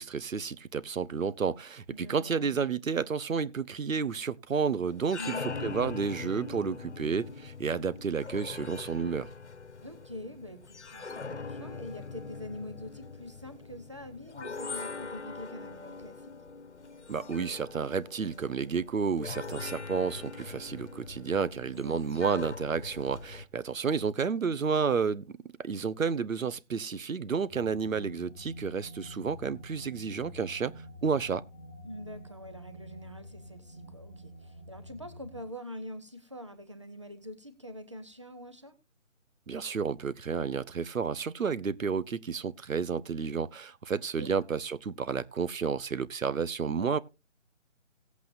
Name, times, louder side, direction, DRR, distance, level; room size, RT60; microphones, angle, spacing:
voice 1, 0.0-5.4 5.6-9.3 17.1-25.2 25.6-30.7 31.0-31.4 39.5-47.0, right 5 dB, 80° right, 1.0 m, -31 dB
voice 2, 1.9-2.6 5.2-5.5 9.8-16.4 21.8-22.0 24.0-24.1 31.8-38.8 44.2-44.3, left 1 dB, 25° right, 0.8 m, -45 dB
sound 1, 4.9-23.4, left 4 dB, 60° left, 1.2 m, -42 dB
sound 2, 27.5-35.4, equal, 5° right, 2.2 m, -48 dB
17.5 x 8.4 x 2.6 m
figure-of-eight pair, 175°, 39 cm